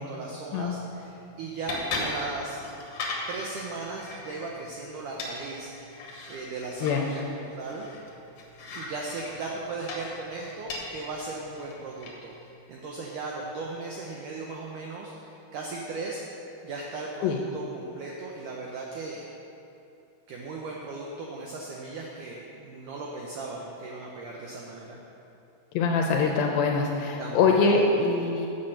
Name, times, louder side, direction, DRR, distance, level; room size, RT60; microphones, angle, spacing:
voice 1, 0.0-2.6 3.3-5.7 6.3-7.9 8.7-16.2 16.6-19.2 20.3-25.0 27.2-27.7, right 3 dB, 75° right, -2 dB, 1.9 m, -37 dB
sound 1, 0.5-12.5, left 2 dB, 55° left, 1.7 m, -39 dB
voice 2, 25.7-28.5, left 4 dB, 80° left, 1 dB, 2.3 m, -23 dB
8.9 x 7.4 x 6.6 m, 2.7 s
omnidirectional pair, 4.6 m